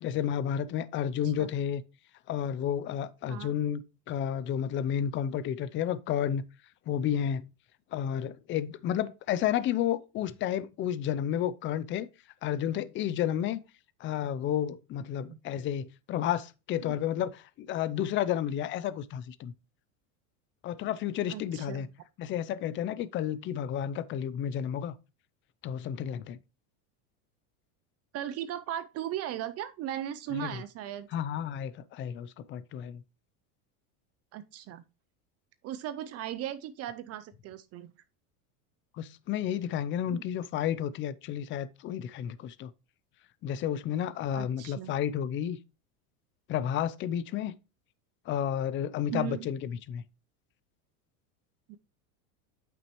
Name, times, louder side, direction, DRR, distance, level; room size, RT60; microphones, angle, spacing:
voice 1, 0.0-1.8 2.3-3.8 4.1-6.4 6.9-7.5 7.9-12.1 12.4-13.6 14.0-19.5 20.6-21.9 22.2-24.9 25.6-26.4 30.3-30.6 31.1-33.0 39.0-42.7 43.4-45.6 46.5-47.5 48.3-50.0, left 10 dB, 30° left, 0.4 m, -31 dB
voice 2, 21.3-21.9 28.1-31.1 34.3-34.8 35.6-37.9 40.1-40.2 44.3-44.9 49.1-49.5, right 11 dB, 35° right, 0.4 m, -37 dB
8.4 x 6.1 x 3.0 m
supercardioid pair, 130°, 45 cm